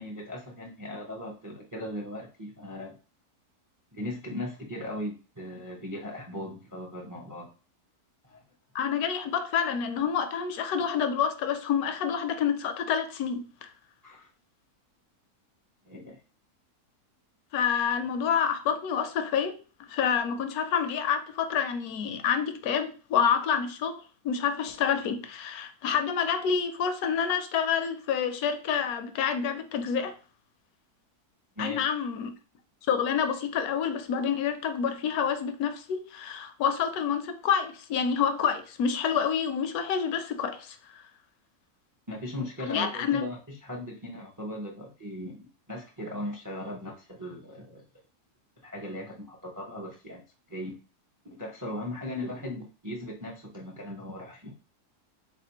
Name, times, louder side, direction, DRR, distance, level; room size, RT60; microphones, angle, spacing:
voice 1, 0.0-3.0 3.9-7.5 8.2-8.4 14.0-14.3 15.9-16.2 31.6-31.9 42.1-47.8 48.6-50.2 50.5-50.8 51.3-54.5, left 1 dB, 25° right, 0.4 m, -38 dB
voice 2, 8.7-13.7 17.5-30.2 31.6-32.3 32.9-41.0 42.7-43.2, left 7 dB, 75° left, 1.0 m, -28 dB
3.7 x 3.3 x 2.9 m
omnidirectional pair, 1.6 m